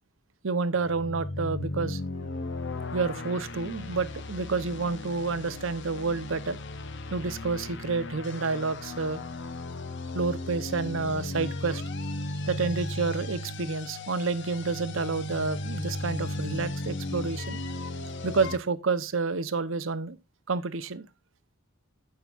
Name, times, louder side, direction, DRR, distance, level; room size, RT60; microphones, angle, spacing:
voice 1, 0.4-2.0 2.9-6.6 7.1-9.2 10.1-11.8 12.5-17.6 18.2-20.2 20.5-21.0, right 4 dB, 65° right, 0.8 m, -29 dB
sound 1, 0.7-18.6, left 2 dB, 60° left, 0.9 m, -36 dB
15.0 x 5.8 x 2.4 m
head